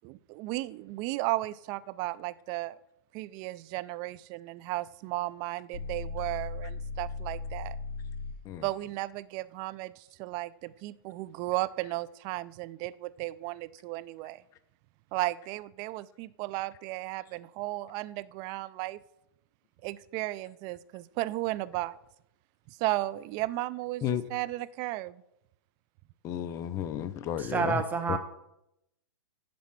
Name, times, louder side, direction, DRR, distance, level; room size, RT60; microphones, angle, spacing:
voice 1, 0.0-2.8 3.1-7.8 8.6-14.4 15.1-19.0 19.8-22.0 22.8-25.2, right 18 dB, 35° right, 17 dB, 0.3 m, -34 dB
sound 1, 5.7-8.5, left 4 dB, 65° left, 2.4 m, -37 dB
voice 2, 26.2-27.8 28.1-28.2, left 9 dB, 25° left, 13 dB, 0.5 m, -32 dB
voice 3, 27.4-28.2, right 5 dB, 15° right, 7 dB, 1.0 m, -28 dB
10.5 x 4.3 x 5.8 m, 0.84 s
hypercardioid pair, 125°, 13 cm